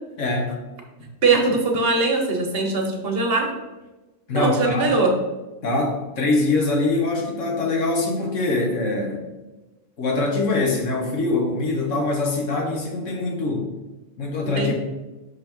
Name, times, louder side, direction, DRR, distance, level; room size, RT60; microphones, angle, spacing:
voice 1, 0.2-0.5 4.3-5.0 5.6-9.3 10.0-13.7 14.2-14.7, left 2 dB, 75° left, 0 dB, 1.5 m, -23 dB
voice 2, 1.2-3.5 4.3-5.2 14.4-14.7, right 3 dB, 55° right, 3 dB, 1.0 m, -21 dB
5.9 x 5.5 x 3.0 m, 1.1 s
omnidirectional pair, 1.3 m